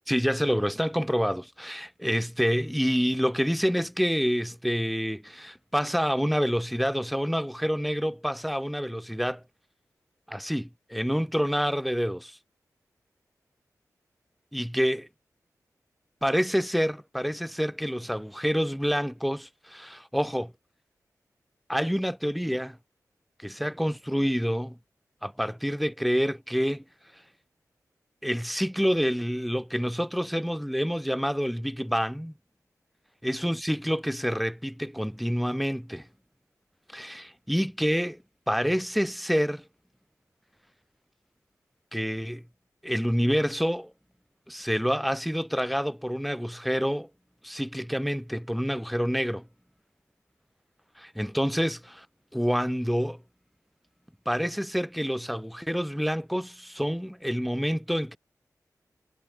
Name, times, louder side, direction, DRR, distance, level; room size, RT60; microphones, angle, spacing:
voice 1, 0.1-9.4 10.3-12.4 14.5-15.1 16.2-20.5 21.7-22.8 23.4-24.8 25.2-26.8 28.2-32.3 33.2-36.1 36.9-38.2 38.5-39.6 41.9-42.4 42.8-43.9 44.5-47.1 47.4-49.4 51.0-51.8 52.3-53.2 54.3-58.2, equal, ahead, 2.2 m, -27 dB
wide cardioid pair, 105°, 7 cm